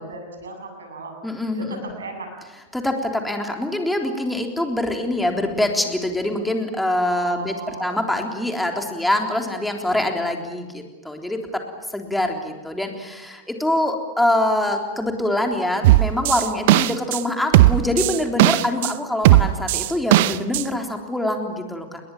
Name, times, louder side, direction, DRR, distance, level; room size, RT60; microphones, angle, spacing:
voice 1, 0.0-1.2 1.5-2.3 7.1-8.0, right 3 dB, 70° right, 4 dB, 7.8 m, -35 dB
voice 2, 1.2-1.8 2.7-7.5 7.8-11.6 11.9-22.0, left 1 dB, 5° left, 3 dB, 3.6 m, -24 dB
sound 1, 15.8-17.2 17.5-18.9 19.3-20.6, right 17 dB, 50° right, 0.8 m, -16 dB
30.0 x 21.5 x 7.3 m, 1.3 s
figure-of-eight pair, 90°, 0 cm